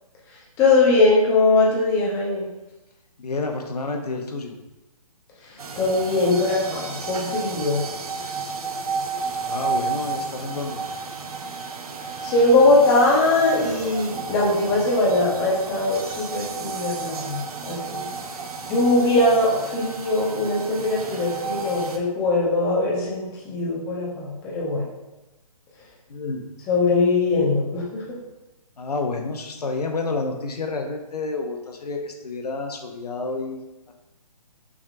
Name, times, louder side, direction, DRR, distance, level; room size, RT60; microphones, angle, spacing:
voice 1, 0.6-2.5 5.8-7.8 12.2-18.1 18.7-24.9 26.7-28.0, left 2 dB, 15° left, -4 dB, 0.8 m, -21 dB
voice 2, 3.2-4.6 9.4-10.8 26.1-26.5 28.8-33.6 33.9-34.0, left 3 dB, 85° left, 4 dB, 0.8 m, -29 dB
sound 1, 5.6-22.0, right 4 dB, 70° right, 0.7 m, -32 dB
6.1 x 3.5 x 2.5 m, 1.0 s
hypercardioid pair, 155°, 19 cm